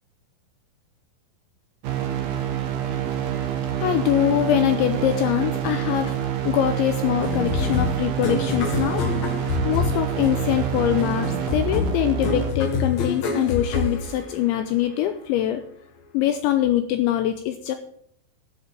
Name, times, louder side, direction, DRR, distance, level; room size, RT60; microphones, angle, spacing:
sound 1, 1.8-12.5, right 9 dB, 60° right, 2.9 m, -27 dB
voice 1, 3.8-6.1 6.4-9.0 9.6-15.6 16.1-17.8, left 12 dB, 80° left, 8 dB, 2.8 m, -23 dB
sound 2, 7.2-14.8, left 4 dB, 65° left, 1.8 m, -27 dB
11.0 x 7.7 x 8.7 m, 0.68 s
omnidirectional pair, 5.8 m